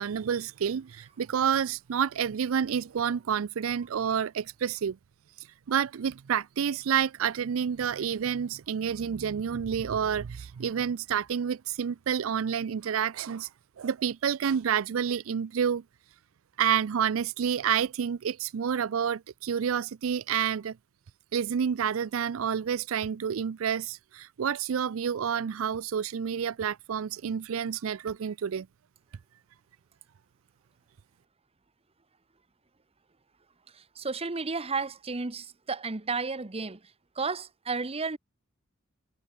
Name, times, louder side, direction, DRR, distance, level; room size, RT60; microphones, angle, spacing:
voice 1, 0.0-5.0 5.4-13.5 13.8-15.8 16.6-20.8 21.3-28.7, right 8 dB, 70° right, 0.4 m, -29 dB
voice 2, 33.7-36.8 37.2-38.2, right 4 dB, 30° right, 1.0 m, -32 dB
head